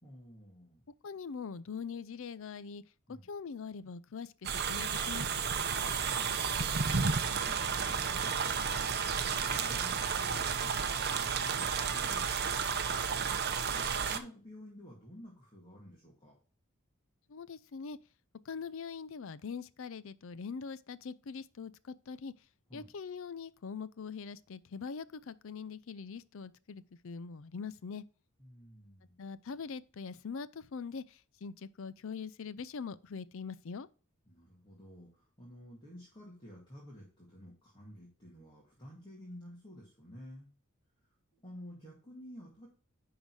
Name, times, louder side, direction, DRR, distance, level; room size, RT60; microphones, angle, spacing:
voice 1, 0.0-0.9 3.1-3.3 5.8-12.7 13.7-16.4 22.7-22.9 28.4-29.2 34.3-40.5 41.4-42.7, equal, 20° left, 2.1 m, -52 dB
voice 2, 1.0-2.8 3.1-5.4 17.3-18.0 18.5-22.3 22.7-28.0 29.2-33.9, left 5 dB, 60° left, 0.5 m, -42 dB
sound 1, 4.4-14.2, right 6 dB, 45° right, 0.8 m, -32 dB
10.5 x 3.9 x 4.7 m
head